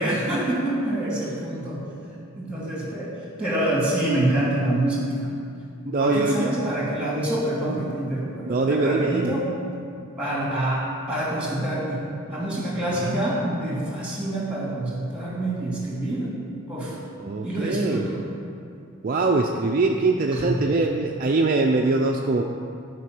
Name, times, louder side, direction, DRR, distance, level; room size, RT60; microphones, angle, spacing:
voice 1, 0.0-1.8 2.4-5.3 6.0-9.5 10.2-12.0 12.3-16.3 16.7-17.0 17.4-18.2 20.3-20.5, right 1 dB, 5° right, -5 dB, 2.2 m, -26 dB
voice 2, 5.8-6.5 8.4-9.4 12.9-13.5 17.2-18.1 19.0-22.4, right 3 dB, 40° right, 1 dB, 0.4 m, -23 dB
11.5 x 4.6 x 6.0 m, 2.4 s
head